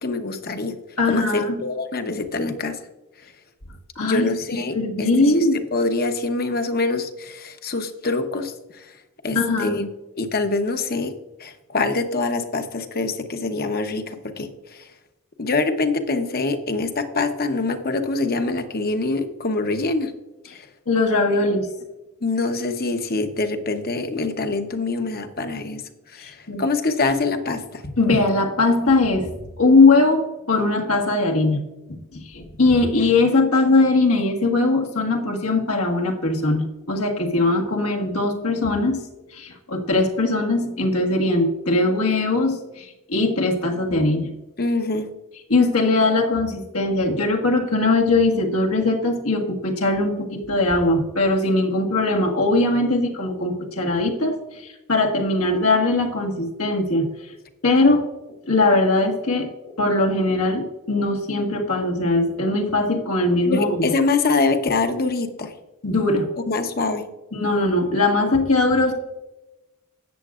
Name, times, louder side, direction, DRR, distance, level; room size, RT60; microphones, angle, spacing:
voice 1, 0.0-0.8 1.1-2.8 4.0-8.9 9.2-9.9 10.2-11.1 11.4-14.8 15.4-20.1 20.5-20.7 22.2-25.8 26.1-27.9 44.6-45.1 63.5-65.5 66.5-67.1, left 3 dB, 45° left, 7 dB, 0.9 m, -25 dB
voice 2, 1.0-1.6 3.9-4.3 4.7-5.6 9.3-9.8 20.9-21.7 26.2-26.6 28.0-29.3 29.6-31.6 31.9-39.0 39.3-44.3 45.5-57.1 57.6-58.0 58.5-59.5 59.8-63.9 65.8-66.3 67.3-68.9, left 2 dB, 75° left, 1 dB, 1.6 m, -20 dB
13.0 x 8.8 x 2.5 m, 1.0 s
head